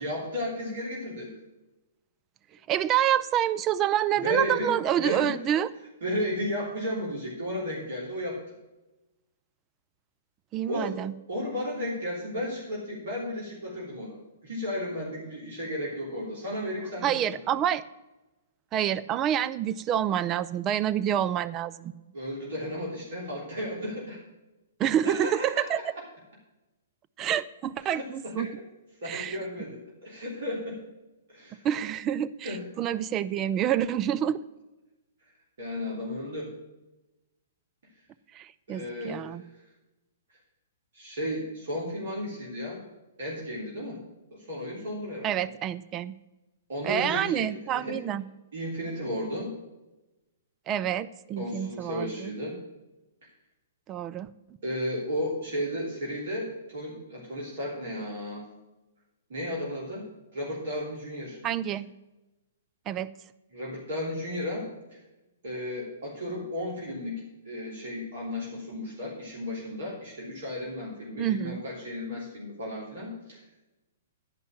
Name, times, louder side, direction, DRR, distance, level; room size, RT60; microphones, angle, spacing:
voice 1, 0.0-1.3 4.1-5.3 6.0-8.4 10.7-11.0 11.3-17.4 22.1-24.2 25.0-25.7 27.8-28.5 29.0-30.8 31.3-31.6 32.4-32.7 35.6-36.5 38.7-39.4 40.9-42.8 43.2-44.0 44.3-45.5 46.7-47.5 47.7-48.0 48.5-49.5 51.4-52.6 53.2-53.3 54.6-58.4 59.3-60.1 60.3-61.4 63.5-65.0 65.4-73.4, left 1 dB, 60° right, -3 dB, 3.3 m, -34 dB
voice 2, 2.7-5.7 10.5-11.1 17.0-17.8 18.7-21.9 24.8-25.8 27.2-28.5 29.1-29.4 31.6-34.4 38.3-39.4 45.2-46.1 46.8-48.2 50.7-52.3 53.9-54.3 61.4-61.9 62.9-63.1 71.2-71.6, right 10 dB, 25° right, 14 dB, 0.5 m, -27 dB
10.5 x 5.5 x 7.5 m, 1.0 s
figure-of-eight pair, 120°, 0 cm